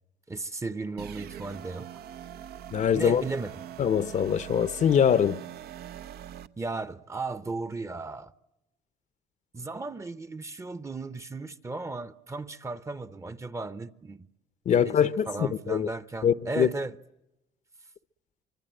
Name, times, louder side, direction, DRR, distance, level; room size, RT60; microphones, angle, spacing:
voice 1, 0.3-1.9 2.9-3.6 6.6-8.3 9.5-14.3 14.7-16.9, right 3 dB, 15° right, 0.9 m, -35 dB
sound 1, 1.0-6.5, right 10 dB, 65° right, 0.9 m, -42 dB
voice 2, 2.7-3.2 3.8-5.4 14.7-15.9 16.2-16.7, left 8 dB, 45° left, 0.8 m, -23 dB
25.0 x 24.5 x 7.8 m
cardioid pair, 110°, 17 cm